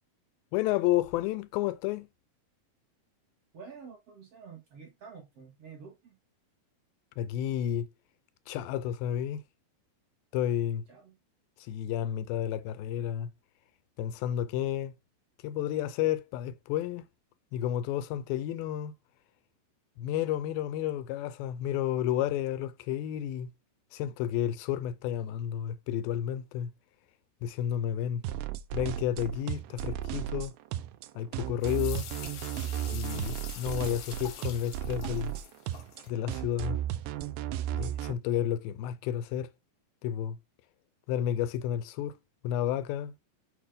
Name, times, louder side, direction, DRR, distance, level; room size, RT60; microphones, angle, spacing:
voice 1, 0.5-2.1 7.2-7.9 8.5-9.4 10.3-10.8 11.7-13.3 14.0-14.9 15.4-17.0 17.5-18.9 20.0-23.5 23.9-26.7 27.4-28.2 28.7-30.5 31.2-32.1 32.9-35.3 36.1-36.8 37.7-39.5 40.0-40.4 41.1-42.2 42.4-43.1, left 11 dB, 85° left, 2.4 m, -31 dB
voice 2, 3.5-6.2 10.9-11.2, right 6 dB, 50° right, 2.1 m, -49 dB
sound 1, 28.2-38.1, right 11 dB, 80° right, 2.2 m, -34 dB
sound 2, 31.6-36.1, left 9 dB, 70° left, 1.7 m, -45 dB
6.7 x 2.8 x 5.1 m
omnidirectional pair, 4.2 m